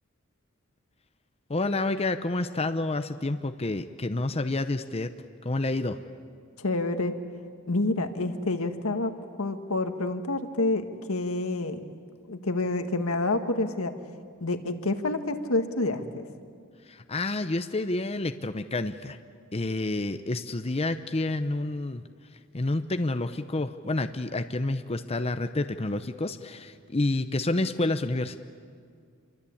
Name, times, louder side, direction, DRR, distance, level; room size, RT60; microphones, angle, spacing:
voice 1, 1.5-5.1 5.4-6.0 16.9-19.2 19.5-22.0 22.5-28.4, left 2 dB, 30° left, 8 dB, 0.8 m, -29 dB
voice 2, 6.6-7.1 7.7-9.1 9.4-11.8 12.3-13.9 14.4-16.2, left 2 dB, 90° left, 7 dB, 1.7 m, -28 dB
27.0 x 24.0 x 8.6 m, 2.2 s
head